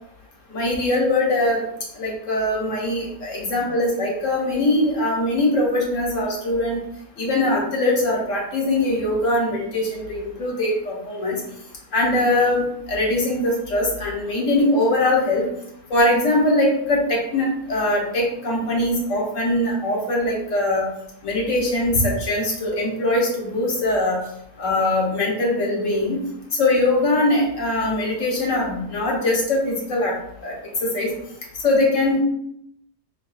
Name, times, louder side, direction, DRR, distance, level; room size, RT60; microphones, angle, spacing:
voice 1, 0.5-1.6 1.9-6.8 7.2-11.4 11.9-15.5 15.9-20.8 21.2-24.2 24.6-26.2 26.5-30.2 30.4-30.5 30.8-31.1 31.6-32.2, left 1 dB, 75° left, -2 dB, 1.4 m, -21 dB
4.7 x 3.2 x 2.3 m, 0.76 s
omnidirectional pair, 1.3 m